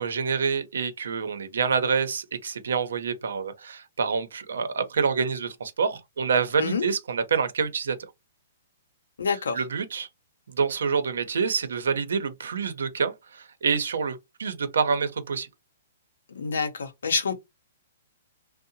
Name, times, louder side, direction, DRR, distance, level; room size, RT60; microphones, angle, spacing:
voice 1, 0.0-8.0 9.3-10.1 10.5-15.5, right 5 dB, 85° right, 0.7 m, -27 dB
voice 2, 9.2-9.7 16.3-17.4, left 5 dB, 85° left, 0.7 m, -27 dB
2.7 x 2.1 x 2.6 m
hypercardioid pair, 150°, 0 cm